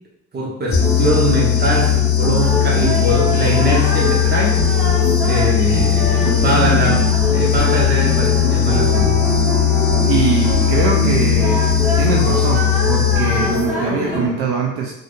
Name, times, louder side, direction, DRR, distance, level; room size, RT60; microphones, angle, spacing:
voice 1, 0.3-4.6 5.2-9.2, right 1 dB, 20° right, -2 dB, 1.0 m, -22 dB
sound 1, 0.7-13.8, left 9 dB, 45° left, 0.8 m, -17 dB
sound 2, 0.8-14.3, equal, ahead, 1.5 m, -23 dB
voice 2, 10.1-11.7 12.0-14.9, right 5 dB, 55° right, 0 dB, 0.6 m, -22 dB
3.9 x 3.2 x 2.4 m, 0.84 s
figure-of-eight pair, 55°, 49 cm